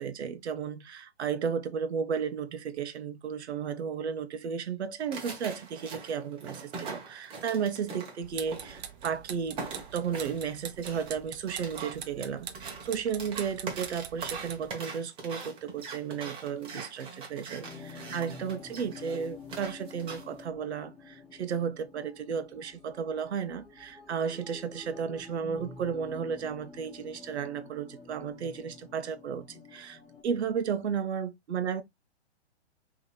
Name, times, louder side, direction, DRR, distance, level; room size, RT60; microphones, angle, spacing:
voice 1, 0.0-31.8, right 7 dB, 75° right, 0.9 m, -34 dB
sound 1, 5.1-9.2 9.6-20.4, right 4 dB, 15° right, 0.9 m, -42 dB
sound 2, 8.2-14.7, right 9 dB, 40° right, 0.7 m, -44 dB
sound 3, 17.6-30.2, left 4 dB, 5° left, 0.3 m, -49 dB
5.0 x 2.9 x 2.2 m
hypercardioid pair, 140°, 33 cm